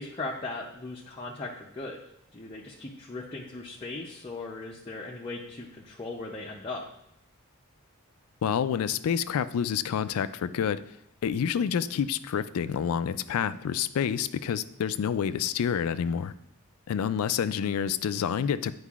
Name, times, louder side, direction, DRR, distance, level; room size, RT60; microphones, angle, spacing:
voice 1, 0.0-2.0 2.3-6.9, left 2 dB, 25° left, -3 dB, 0.5 m, -38 dB
voice 2, 8.4-10.8 11.2-16.3 16.9-18.7, left 8 dB, 75° left, 14 dB, 0.3 m, -28 dB
9.9 x 4.7 x 2.4 m, 0.78 s
head